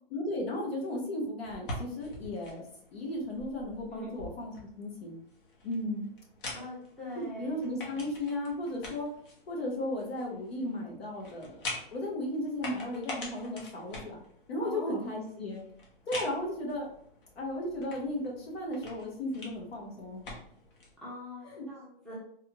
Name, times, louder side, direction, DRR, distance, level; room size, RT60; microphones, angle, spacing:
voice 1, 0.1-2.6 2.9-5.1 5.6-6.1 7.1-9.1 9.5-11.6 11.9-14.2 14.5-15.6 16.1-16.9 17.3-20.3 21.4-21.7, left 1 dB, 90° left, -1 dB, 1.3 m, -35 dB
sound 1, 1.4-20.9, left 2 dB, 60° left, 1.2 m, -46 dB
voice 2, 6.5-7.5 14.6-15.0 16.3-16.4 21.0-22.1, left 1 dB, ahead, -6 dB, 0.5 m, -42 dB
3.4 x 2.3 x 2.9 m, 0.64 s
hypercardioid pair, 155°, 29 cm